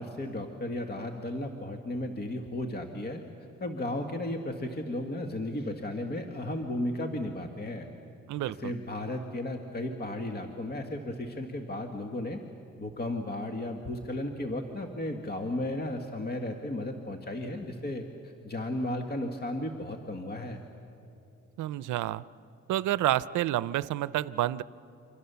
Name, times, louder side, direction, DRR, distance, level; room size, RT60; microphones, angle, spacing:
voice 1, 0.0-3.2 3.6-7.9 8.5-12.4 12.8-20.6, left 1 dB, 30° left, 4 dB, 1.8 m, -34 dB
voice 2, 8.3-8.7 21.6-22.2 22.7-24.6, right 14 dB, 75° right, 18 dB, 0.6 m, -29 dB
28.5 x 25.0 x 7.0 m, 2.7 s
cardioid pair, 90°, 30 cm